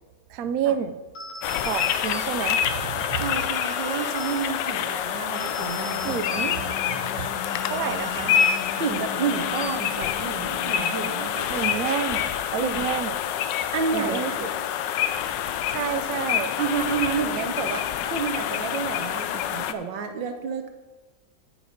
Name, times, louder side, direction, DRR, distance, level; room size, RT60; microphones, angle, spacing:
voice 1, 0.3-1.0 1.6-3.3 6.0-7.3 7.7-8.3 11.5-13.2 13.9-14.5 15.7-16.5, right 9 dB, 65° right, 9 dB, 1.0 m, -29 dB
sound 1, 1.1-10.2, left 1 dB, 50° left, 1.6 m, -40 dB
sound 2, 1.4-19.7, left 9 dB, 90° left, 1.3 m, -27 dB
voice 2, 3.2-6.4 6.7-6.8 8.7-11.6 12.6-12.9 13.7-14.5 16.6-20.7, right 6 dB, 85° right, 6 dB, 1.7 m, -30 dB
sound 3, 5.6-11.2, left 5 dB, 65° left, 1.1 m, -40 dB
8.8 x 7.8 x 5.2 m, 1.2 s
omnidirectional pair, 1.9 m